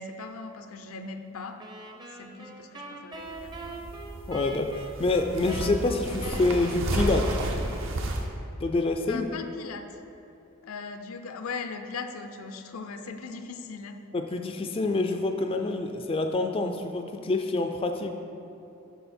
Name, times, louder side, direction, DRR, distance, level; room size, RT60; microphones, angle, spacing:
voice 1, 0.0-1.6 2.1-3.8 9.1-10.0 10.6-14.0, left 4 dB, 80° left, 7 dB, 0.6 m, -39 dB
sound 1, 1.6-8.2, right 2 dB, 20° right, 0.6 m, -42 dB
sound 2, 3.1-8.2, right 1 dB, 65° right, 0.7 m, -32 dB
voice 2, 4.3-7.3 8.6-9.3 14.1-18.1, left 2 dB, 25° left, 5 dB, 0.4 m, -27 dB
11.0 x 4.4 x 4.3 m, 2.9 s
head